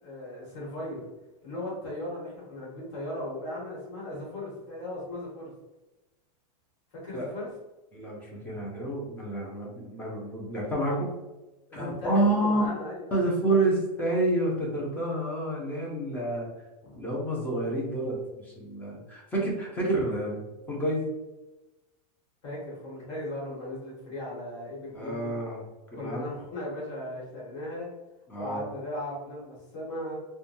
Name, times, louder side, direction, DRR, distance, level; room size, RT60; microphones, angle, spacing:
voice 1, 0.0-1.1 1.4-5.5 6.9-7.5 11.7-13.6 16.8-17.0 22.4-25.3 25.9-27.9 28.3-30.1, left 1 dB, 50° left, -4 dB, 1.4 m, -37 dB
voice 2, 7.9-11.1 11.7-12.6 13.1-16.5 17.0-21.1 24.9-25.6 25.9-26.3 28.3-28.6, right 1 dB, 10° left, -3 dB, 0.6 m, -29 dB
2.9 x 2.2 x 2.6 m, 1.0 s
supercardioid pair, 165°, 20 cm